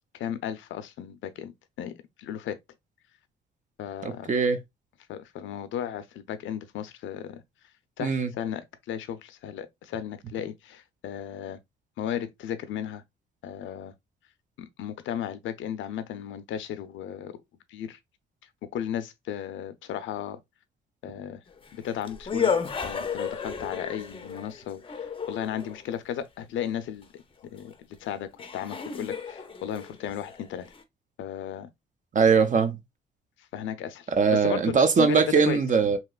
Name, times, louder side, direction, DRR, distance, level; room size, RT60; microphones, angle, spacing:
voice 1, 0.1-1.5 1.8-1.9 2.2-2.6 3.8-4.3 5.1-7.4 8.0-11.6 12.0-13.0 13.4-13.9 14.6-17.3 17.7-18.0 18.6-20.4 21.0-21.4 21.7-22.5 22.8-27.1 27.5-27.7 28.0-30.7 31.2-31.7 33.5-35.6, left 10 dB, 75° left, 0.5 m, -35 dB
voice 2, 4.0-4.6 8.0-8.3 32.1-32.8 34.2-36.0, right 5 dB, 40° right, 0.6 m, -21 dB
sound 1, 21.6-25.8 27.7-27.8 28.4-30.8, left 6 dB, 25° left, 0.5 m, -33 dB
2.9 x 2.8 x 2.3 m
cardioid pair, 90°, 20 cm